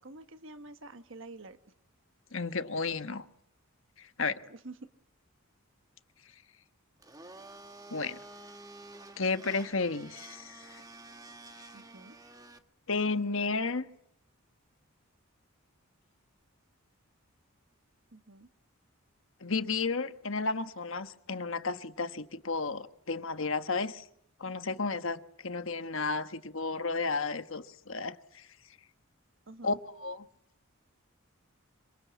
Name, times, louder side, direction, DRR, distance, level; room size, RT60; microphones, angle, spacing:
voice 1, 0.0-1.6 4.4-4.7 11.7-12.1 18.1-18.5 29.5-29.8, right 2 dB, 60° right, 1.4 m, -48 dB
voice 2, 2.3-3.2 4.0-4.4 7.9-8.2 9.2-10.8 12.9-13.9 19.4-24.1 24.4-28.5 29.6-30.2, left 4 dB, 65° left, 1.4 m, -33 dB
Domestic sounds home sounds, 7.0-12.6, right 2 dB, 15° right, 1.4 m, -50 dB
27.0 x 25.5 x 8.5 m
head